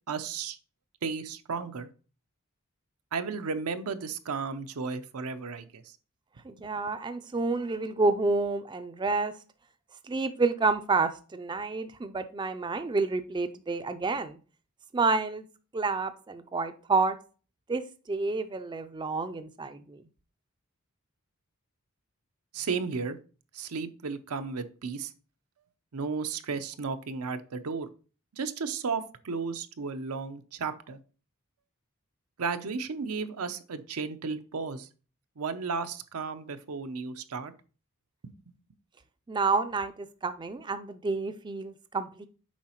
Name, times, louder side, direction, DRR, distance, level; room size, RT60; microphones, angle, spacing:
voice 1, 0.1-0.6 1.0-1.9 3.1-5.8 22.5-23.2 23.5-25.1 25.9-27.9 28.3-31.0 32.4-34.9 35.4-37.5 38.2-38.3, right 5 dB, 85° right, 0.6 m, -34 dB
voice 2, 6.4-9.3 10.0-14.4 14.9-15.4 15.7-17.2 17.7-20.0 39.3-42.3, right 3 dB, 20° right, 0.3 m, -29 dB
7.2 x 4.8 x 2.9 m
head